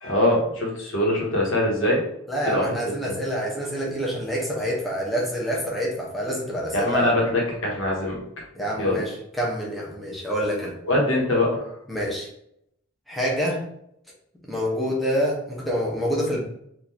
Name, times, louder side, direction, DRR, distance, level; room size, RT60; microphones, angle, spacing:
voice 1, 0.0-2.0 2.4-2.7 3.1-3.2 6.7-8.2 8.8-9.0 10.8-11.7, left 1 dB, 70° left, -2 dB, 1.1 m, -23 dB
voice 2, 2.3-7.0 8.5-10.7 11.9-12.3 13.1-13.6 14.4-16.5, equal, ahead, -4 dB, 0.7 m, -27 dB
3.7 x 2.5 x 2.8 m, 0.75 s
head